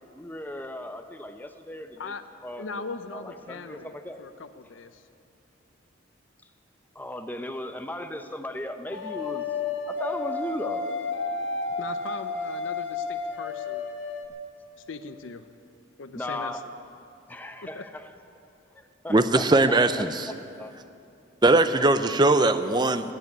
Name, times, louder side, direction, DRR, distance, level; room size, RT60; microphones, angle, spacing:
voice 1, 0.1-2.1 2.4-2.7 3.1-4.2 6.9-9.5 9.9-10.9 16.1-16.7 17.3-18.1 19.0-20.7, left 1 dB, 10° left, 7 dB, 0.7 m, -36 dB
voice 2, 2.6-5.0 11.8-13.9 14.9-15.5 16.0-16.6 17.7-17.9, left 4 dB, 85° left, 10 dB, 0.6 m, -39 dB
sound 1, 8.9-14.3, left 4 dB, 65° left, 1.3 m, -31 dB
voice 3, 19.1-20.3 21.4-23.1, right 2 dB, 20° right, 11 dB, 0.5 m, -20 dB
18.5 x 7.6 x 9.6 m, 2.7 s
head